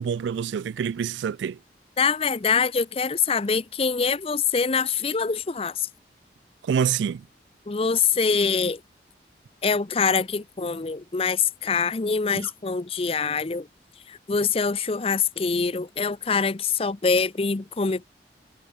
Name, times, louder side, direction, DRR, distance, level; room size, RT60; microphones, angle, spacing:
voice 1, 0.0-1.6 6.6-7.2 12.3-12.5, right 7 dB, 85° right, 0.3 m, -26 dB
voice 2, 2.0-5.9 7.7-8.8 9.6-13.7 14.1-18.0, left 5 dB, 30° left, 0.5 m, -24 dB
head